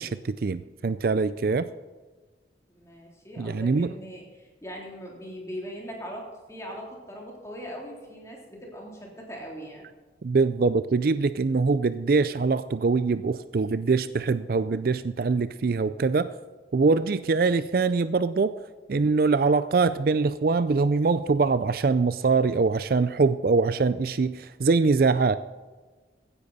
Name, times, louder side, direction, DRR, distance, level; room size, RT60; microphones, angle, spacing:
voice 1, 0.0-1.7 3.4-3.9 10.2-16.3 16.7-18.5 18.9-25.4, right 4 dB, 50° right, 13 dB, 0.4 m, -23 dB
voice 2, 2.7-9.9, equal, 15° left, -2 dB, 3.2 m, -40 dB
15.5 x 9.9 x 4.1 m, 1.3 s
head